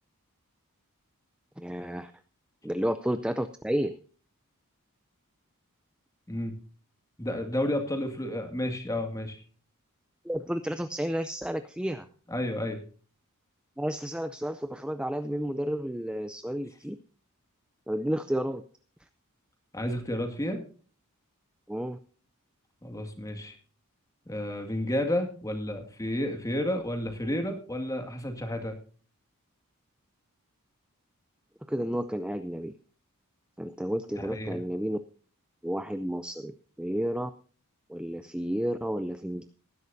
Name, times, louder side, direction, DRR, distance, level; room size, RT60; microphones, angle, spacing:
voice 1, 1.6-2.1 2.6-4.0 10.2-12.1 13.8-17.0 17.9-18.6 21.7-22.0 31.7-32.7 33.6-35.0 35.6-37.3 37.9-39.4, equal, 5° right, 10 dB, 0.5 m, -31 dB
voice 2, 7.2-9.4 12.3-12.8 19.7-20.6 22.8-23.5 24.3-28.8 34.2-34.6, left 1 dB, 15° left, 5 dB, 2.1 m, -31 dB
19.0 x 11.0 x 2.7 m, 0.40 s
head